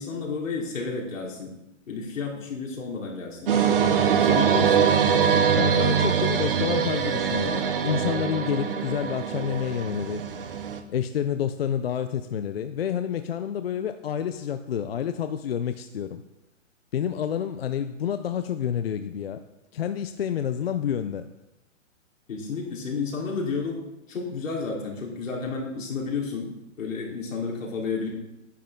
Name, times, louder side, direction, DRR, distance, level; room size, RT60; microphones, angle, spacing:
voice 1, 0.0-1.5 1.9-3.9 4.2-4.9 22.3-23.8 24.1-26.5 26.8-28.1, left 4 dB, 85° left, -2 dB, 3.7 m, -31 dB
sound 1, 3.3-5.2 9.0-9.1, left 3 dB, 20° left, 1.3 m, -46 dB
sound 2, 3.5-10.8, right 7 dB, 45° right, 0.8 m, -23 dB
voice 2, 5.5-10.2 10.9-16.2 16.9-19.4 19.7-21.3, left 9 dB, 50° left, 9 dB, 0.5 m, -29 dB
10.0 x 9.5 x 3.7 m, 0.90 s
hypercardioid pair, 175°, 38 cm